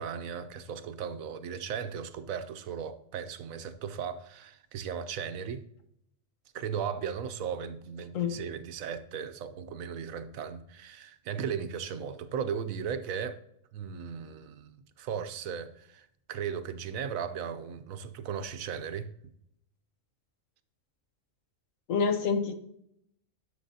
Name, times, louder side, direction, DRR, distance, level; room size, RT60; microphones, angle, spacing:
voice 1, 0.0-5.6 6.5-13.4 13.7-19.1, right 7 dB, 85° right, 11 dB, 1.1 m, -36 dB
voice 2, 21.9-22.6, left 5 dB, 75° left, 8 dB, 1.3 m, -27 dB
11.5 x 6.0 x 2.8 m, 0.74 s
omnidirectional pair, 1.4 m